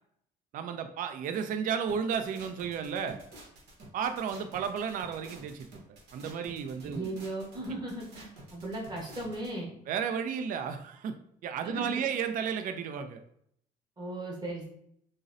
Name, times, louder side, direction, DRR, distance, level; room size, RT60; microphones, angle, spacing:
voice 1, 0.5-3.2 3.9-5.7 6.1-7.1 9.9-11.1 11.4-13.2, right 7 dB, 55° right, 7 dB, 0.4 m, -33 dB
sound 1, 1.9-9.5, right 1 dB, 80° right, 0.9 m, -50 dB
voice 2, 6.8-8.2 8.5-9.7 11.6-12.0 14.0-14.7, right 1 dB, 25° right, -3 dB, 1.1 m, -37 dB
3.8 x 2.0 x 2.6 m, 0.70 s
cardioid pair, 110°, 17 cm